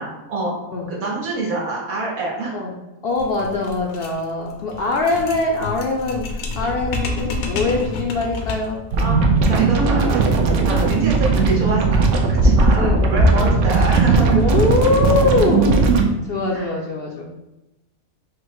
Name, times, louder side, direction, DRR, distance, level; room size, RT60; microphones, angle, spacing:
voice 1, 0.0-0.5 0.9-2.6 9.0-10.3 10.6-14.4 16.5-16.7, right 3 dB, 85° right, -3 dB, 1.6 m, -26 dB
voice 2, 3.0-8.8 10.7-10.9 12.8-13.1 14.3-15.8 16.3-17.2, left 3 dB, 60° left, -1 dB, 0.6 m, -22 dB
sound 1, 3.1-8.8, left 3 dB, 80° left, 1.1 m, -29 dB
sound 2, 8.9-16.0, right 3 dB, 70° right, 0.9 m, -17 dB
4.9 x 2.0 x 4.6 m, 0.96 s
omnidirectional pair, 1.5 m